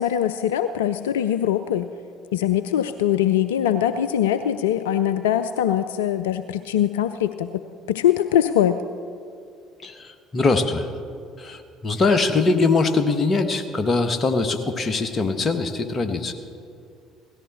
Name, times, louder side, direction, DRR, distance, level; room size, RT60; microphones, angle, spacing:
voice 1, 0.0-1.9 2.3-7.6 7.9-8.8, left 10 dB, 75° left, 11 dB, 0.3 m, -22 dB
voice 2, 9.8-10.9 11.4-16.3, left 3 dB, 35° left, 7 dB, 1.2 m, -22 dB
17.0 x 14.0 x 4.3 m, 2.4 s
figure-of-eight pair, 55°, 0 cm